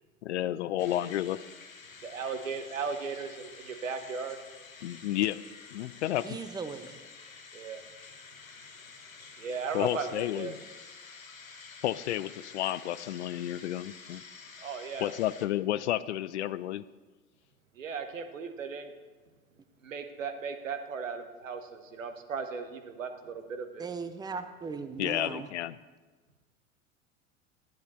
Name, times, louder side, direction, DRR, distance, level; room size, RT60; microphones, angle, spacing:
voice 1, 0.2-1.4 4.8-5.4 5.7-6.4 9.7-10.6 11.8-14.2 15.0-16.8 25.0-25.8, left 13 dB, 60° left, 17 dB, 0.5 m, -31 dB
sound 1, 0.8-15.5, left 5 dB, 85° left, 0.9 m, -50 dB
voice 2, 2.0-4.4 7.5-7.8 9.4-10.6 14.6-15.1 17.7-18.9 19.8-23.9, right 5 dB, 75° right, 7 dB, 1.1 m, -37 dB
voice 3, 6.2-7.0 23.8-25.5, right 4 dB, 10° right, 10 dB, 0.7 m, -38 dB
13.0 x 10.5 x 4.2 m, 1.3 s
figure-of-eight pair, 75°, 39 cm